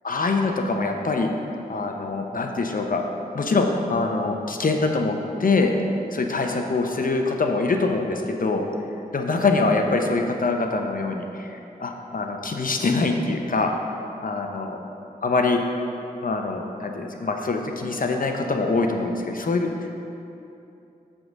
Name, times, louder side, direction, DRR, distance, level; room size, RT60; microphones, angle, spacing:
voice 1, 0.0-1.3 1.7-3.0 3.3-5.7 6.1-8.7 9.1-13.7 14.2-14.8 15.2-15.6 16.2-19.9, left 3 dB, 55° left, 3 dB, 0.8 m, -24 dB
7.8 x 3.7 x 6.3 m, 2.8 s
cardioid pair, 45°, 17 cm